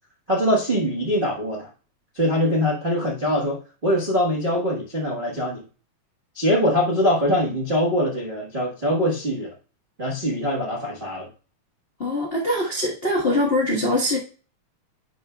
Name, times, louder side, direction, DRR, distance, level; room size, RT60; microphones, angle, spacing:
voice 1, 0.3-1.7 2.1-3.6 3.8-5.6 6.3-9.5 10.0-11.3, equal, 75° right, -4 dB, 0.4 m, -23 dB
voice 2, 12.0-14.2, left 1 dB, 85° left, -5 dB, 0.5 m, -22 dB
9.9 x 5.4 x 2.2 m, 0.36 s
omnidirectional pair, 3.3 m